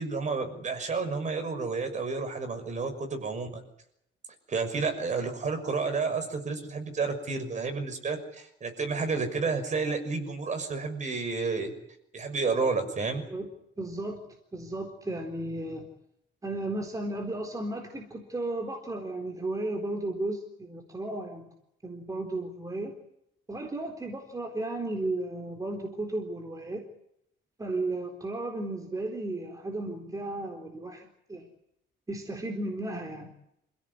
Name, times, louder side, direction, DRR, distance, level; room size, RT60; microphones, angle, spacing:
voice 1, 0.0-3.6 4.5-11.7 12.1-13.2, right 4 dB, 35° right, 6 dB, 6.2 m, -30 dB
voice 2, 13.8-14.2 14.5-15.9 16.4-21.5 21.8-22.9 23.5-26.9 27.6-31.5 32.1-33.3, right 2 dB, 15° right, 3 dB, 4.0 m, -34 dB
28.0 x 16.5 x 9.7 m, 0.78 s
cardioid pair, 135°, 20 cm